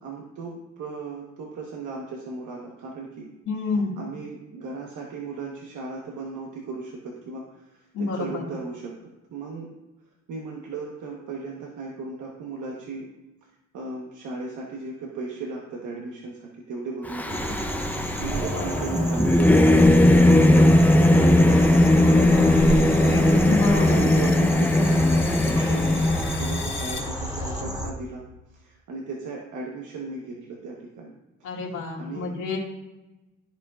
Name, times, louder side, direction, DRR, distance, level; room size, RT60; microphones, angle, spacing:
voice 1, 0.0-3.3 4.0-9.7 10.3-13.1 13.7-21.4 22.0-22.5 23.0-28.2 28.5-31.1 32.0-32.3, right 3 dB, 75° right, -2 dB, 1.2 m, -36 dB
voice 2, 3.5-4.0 7.9-8.4 18.4-18.8 23.5-24.0 31.4-32.6, left 3 dB, 80° left, -3 dB, 2.2 m, -28 dB
Singing / Musical instrument, 17.1-26.6, left 1 dB, 5° left, 0.6 m, -18 dB
sound 1, 17.3-27.9, right 1 dB, 10° right, 1.2 m, -30 dB
sound 2, 21.5-27.6, left 5 dB, 60° left, 2.5 m, -41 dB
14.0 x 4.7 x 2.5 m, 1.0 s
cardioid pair, 90°, 30 cm